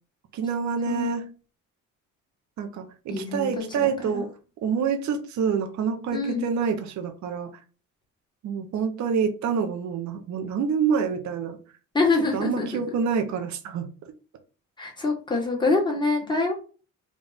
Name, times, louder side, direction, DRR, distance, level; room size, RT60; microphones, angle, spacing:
voice 1, 0.3-1.3 2.6-4.3 4.6-7.5 8.4-11.6 12.3-13.9, right 6 dB, 70° right, 5 dB, 0.8 m, -27 dB
voice 2, 3.1-3.5 3.7-3.9 4.1-4.2 6.1-6.4 11.9-12.8 14.8-16.5, left 3 dB, 15° left, -1 dB, 1.5 m, -25 dB
3.7 x 2.4 x 3.9 m, 0.36 s
cardioid pair, 90°, 30 cm